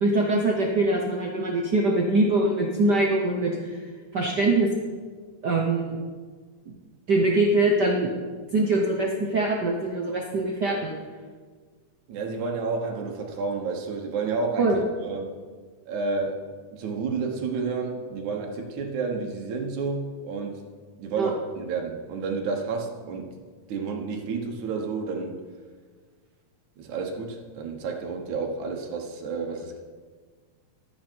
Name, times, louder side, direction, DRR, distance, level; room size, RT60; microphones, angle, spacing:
voice 1, 0.0-3.8 4.1-4.7 5.4-6.0 6.7-6.8 7.1-8.1 8.5-10.9 14.6-14.8 21.2-21.3, right 2 dB, 65° right, -1 dB, 1.0 m, -23 dB
voice 2, 12.1-14.7 15.0-15.3 15.9-20.7 21.0-23.4 23.7-25.4 26.8-29.8, right 4 dB, 90° right, 2 dB, 2.6 m, -30 dB
12.5 x 9.1 x 4.5 m, 1.5 s
omnidirectional pair, 3.3 m